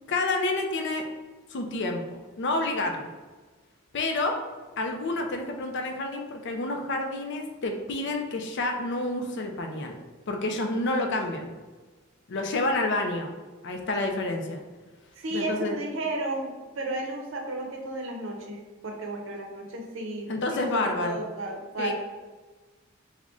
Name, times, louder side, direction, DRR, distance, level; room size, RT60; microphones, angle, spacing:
voice 1, 0.1-1.0 1.5-2.0 2.4-3.1 3.9-4.4 4.8-10.0 10.3-11.5 12.3-13.3 13.6-14.6 15.3-15.8 20.3-21.2 21.8-21.9, left 2 dB, 55° left, 3 dB, 0.4 m, -29 dB
voice 2, 15.2-21.9, right 2 dB, 65° right, 2 dB, 0.6 m, -33 dB
3.6 x 2.1 x 3.6 m, 1.3 s
head